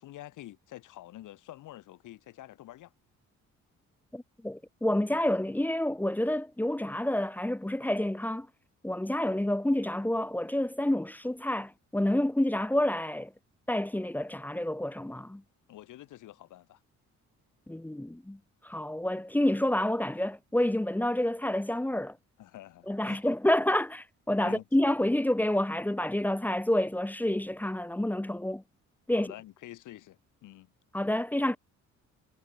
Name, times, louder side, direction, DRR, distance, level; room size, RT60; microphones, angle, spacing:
voice 1, 0.0-2.9 15.7-16.8 22.4-23.3 24.4-24.6 29.1-30.7, left 14 dB, 85° left, 7.6 m, -47 dB
voice 2, 4.1-8.5 8.8-13.3 13.7-15.4 17.7-18.4 18.6-22.2 22.9-28.6 29.1-29.3 30.9-31.6, left 1 dB, 5° left, 0.7 m, -28 dB
cardioid pair, 90°, 30 cm